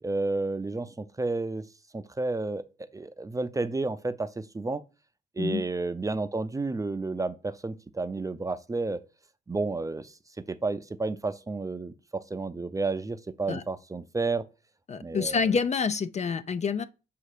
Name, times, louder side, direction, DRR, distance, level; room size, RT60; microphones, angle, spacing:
voice 1, 0.0-1.6 1.9-4.8 5.4-9.0 9.5-10.1 10.5-14.4 15.0-15.4, right 3 dB, 15° right, 0.5 m, -31 dB
voice 2, 14.9-16.8, left 5 dB, 35° left, 0.4 m, -27 dB
7.6 x 2.8 x 4.8 m
cardioid pair, 90°, 20 cm